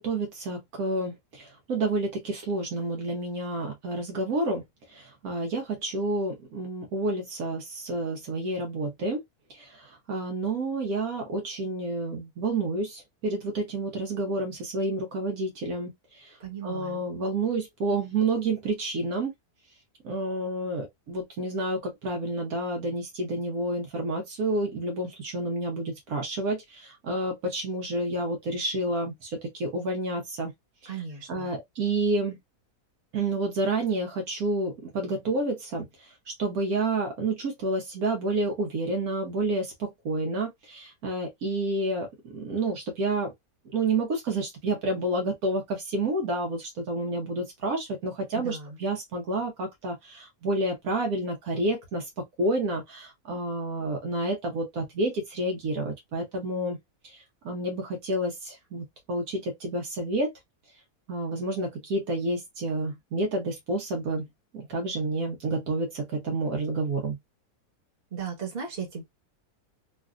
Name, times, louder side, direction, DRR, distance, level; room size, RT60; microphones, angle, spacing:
voice 1, 0.0-4.6 4.9-9.2 9.5-16.4 16.6-19.3 20.0-30.5 31.3-32.4 33.1-35.9 36.3-43.3 43.7-56.8 57.0-57.2 57.4-60.3 61.1-64.3 64.5-67.2, right 2 dB, 75° right, 1.3 m, -29 dB
voice 2, 16.4-17.0 30.8-31.5 48.3-48.8 68.1-69.0, right 6 dB, 40° right, 1.3 m, -36 dB
3.2 x 2.4 x 2.4 m
omnidirectional pair, 1.6 m